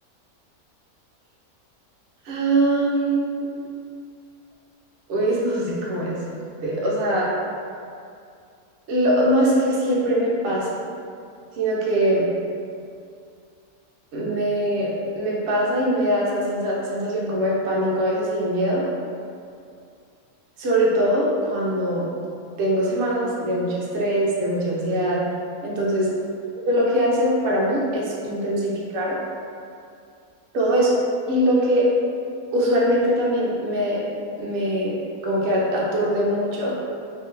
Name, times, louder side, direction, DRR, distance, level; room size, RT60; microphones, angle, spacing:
voice 1, 2.2-3.5 5.1-6.2 6.6-7.3 8.9-10.7 11.6-12.3 14.1-18.8 20.6-22.0 22.6-25.2 25.6-26.1 26.7-29.2 30.5-30.9 31.3-31.9 32.5-34.0 34.4-36.7, right 1 dB, 60° right, -5 dB, 0.8 m, -22 dB
2.6 x 2.3 x 2.9 m, 2.4 s
omnidirectional pair, 1.5 m